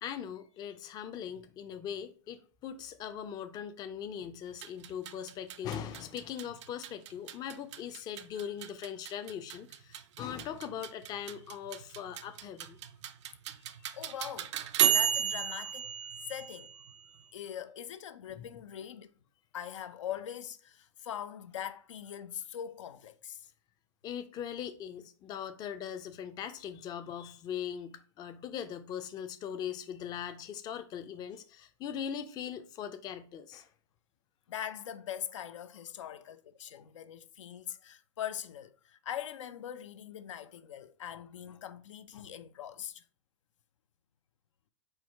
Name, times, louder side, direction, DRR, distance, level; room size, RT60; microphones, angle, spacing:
voice 1, 0.0-12.8 18.4-18.5 24.0-33.7, left 8 dB, 25° left, 0.4 m, -40 dB
sound 1, 4.5-17.2, right 10 dB, 70° right, 0.4 m, -34 dB
voice 2, 13.9-14.6 14.9-15.9 16.3-16.7 17.3-19.1 19.5-23.5 34.5-43.0, left 10 dB, 85° left, 0.4 m, -42 dB
4.6 x 2.1 x 4.5 m
hypercardioid pair, 115°, 16 cm